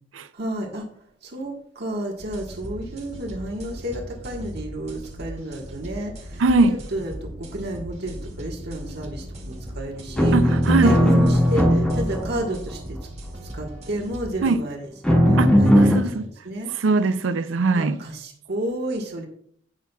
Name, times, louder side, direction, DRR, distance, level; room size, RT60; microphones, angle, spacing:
voice 1, 0.3-0.9 1.2-10.4 10.8-13.0 13.5-14.8 15.0-16.7 17.7-19.3, right 1 dB, 60° right, 1.5 m, -31 dB
sound 1, 2.2-14.6, equal, 35° right, 2.2 m, -37 dB
voice 2, 6.4-6.8 10.3-11.0 14.4-14.6 15.4-16.3 16.7-18.0, right 3 dB, 80° right, 0.5 m, -21 dB
sound 2, 10.2-12.5 15.0-16.0, equal, 5° left, 1.9 m, -17 dB
16.5 x 5.7 x 2.3 m
head